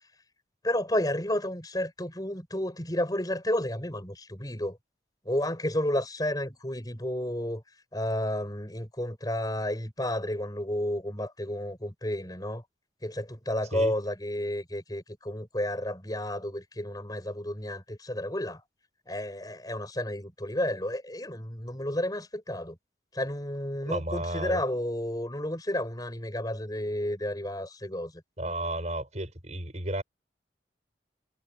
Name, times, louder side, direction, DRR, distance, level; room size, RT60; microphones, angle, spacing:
voice 1, 0.6-4.8 5.3-7.6 7.9-12.6 13.0-18.6 19.1-22.8 23.1-28.1, left 1 dB, 20° left, 7.0 m, -31 dB
voice 2, 23.9-24.6 28.4-30.0, right 1 dB, 40° right, 7.6 m, -33 dB
head